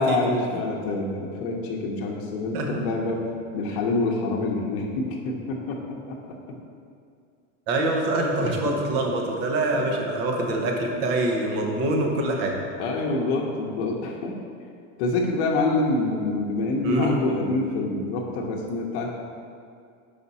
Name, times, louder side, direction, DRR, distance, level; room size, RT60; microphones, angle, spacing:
voice 1, 0.0-3.3 3.5-6.4 8.4-8.8 12.8-14.4 15.0-19.2, left 2 dB, 60° left, 0 dB, 0.9 m, -26 dB
voice 2, 7.7-12.6 16.8-17.2, right 2 dB, 40° right, 1 dB, 0.9 m, -25 dB
5.9 x 5.1 x 4.1 m, 2.3 s
supercardioid pair, 170°, 36 cm